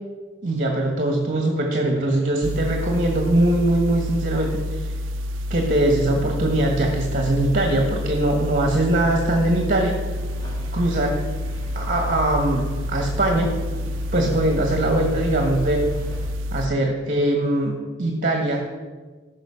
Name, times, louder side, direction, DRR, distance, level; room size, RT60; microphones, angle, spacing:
voice 1, 0.4-4.9 5.5-10.0 10.7-11.2 11.7-13.5 14.1-15.9 16.5-18.6, right 1 dB, 45° right, 2 dB, 1.4 m, -21 dB
sound 1, 2.4-16.7, left 1 dB, 85° right, 0.4 m, -29 dB
sound 2, 10.1-16.3, right 1 dB, 20° left, 2.5 m, -39 dB
14.5 x 5.7 x 5.7 m, 1.4 s
head